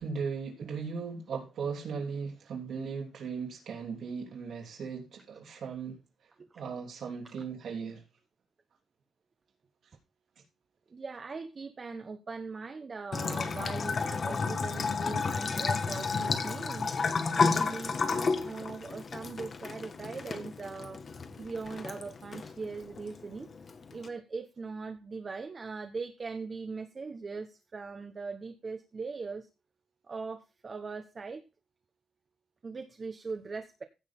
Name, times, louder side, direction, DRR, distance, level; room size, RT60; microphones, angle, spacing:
voice 1, 0.0-6.0 6.5-8.0, right 5 dB, 70° right, 3.3 m, -37 dB
voice 2, 10.9-16.9 17.3-21.0 21.4-23.5 23.9-29.5 30.1-31.4 32.6-33.8, right 4 dB, 30° right, 1.2 m, -40 dB
Bathtub (filling or washing) / Trickle dribble, 13.1-24.1, left 4 dB, 40° left, 1.6 m, -32 dB
16.0 x 6.6 x 3.7 m
wide cardioid pair, 150°, 0 cm